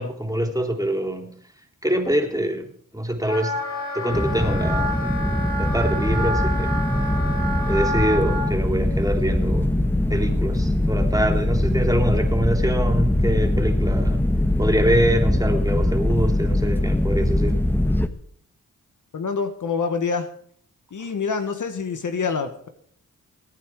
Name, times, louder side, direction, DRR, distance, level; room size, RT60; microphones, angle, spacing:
voice 1, 0.0-1.4 1.8-2.7 2.9-3.5 3.9-5.0 5.5-6.8 7.6-9.7 10.1-14.2 14.6-17.6, right 1 dB, 10° right, 4 dB, 3.6 m, -24 dB
Wind instrument woodwind instrument, 3.2-8.5, equal, 45° left, 7.0 m, -29 dB
sound 1, 4.1-18.1, left 1 dB, 5° left, 1.4 m, -22 dB
voice 2, 19.1-20.3 20.9-22.7, left 5 dB, 65° left, 7 dB, 1.7 m, -26 dB
21.0 x 9.2 x 4.9 m, 0.63 s
cardioid pair, 50°, 33 cm